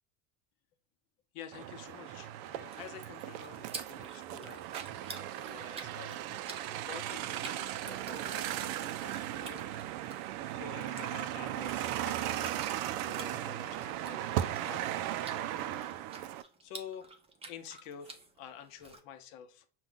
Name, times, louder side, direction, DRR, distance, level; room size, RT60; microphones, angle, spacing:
voice 1, 1.3-4.7 5.0-6.2 6.9-9.7 10.5-12.6 12.8-14.8 16.6-17.1 17.5-19.7, left 9 dB, 65° left, 7 dB, 0.8 m, -49 dB
sound 1, 1.5-16.4, right 12 dB, 70° right, 0.5 m, -37 dB
sound 2, 2.4-19.0, right 3 dB, 15° right, 0.5 m, -51 dB
5.7 x 2.4 x 3.8 m, 0.42 s
supercardioid pair, 120°, 46 cm